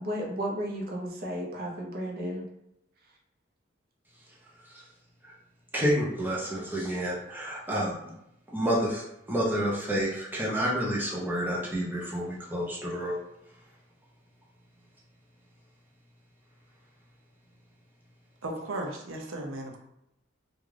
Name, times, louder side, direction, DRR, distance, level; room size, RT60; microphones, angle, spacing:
voice 1, 0.0-2.4, equal, 50° right, -1 dB, 0.7 m, -33 dB
voice 2, 5.7-7.9 8.5-9.0 9.3-13.2, equal, 10° right, -5 dB, 0.6 m, -29 dB
voice 3, 18.4-19.8, right 1 dB, 90° right, 2 dB, 0.6 m, -35 dB
2.4 x 2.3 x 3.2 m, 0.83 s
head